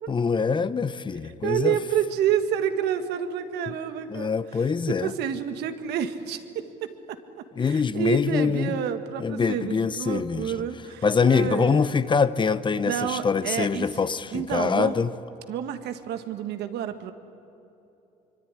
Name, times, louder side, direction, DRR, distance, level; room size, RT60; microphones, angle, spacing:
voice 1, 0.1-1.8 4.1-5.1 7.6-8.7 9.2-10.5 11.0-15.1, left 5 dB, 30° left, 14 dB, 0.9 m, -24 dB
voice 2, 1.2-4.4 4.9-7.2 7.6-11.9 12.8-13.9 14.3-14.9 15.5-17.1, right 9 dB, 80° right, 8 dB, 1.8 m, -29 dB
24.5 x 24.0 x 10.0 m, 2.9 s
cardioid pair, 110°, 17 cm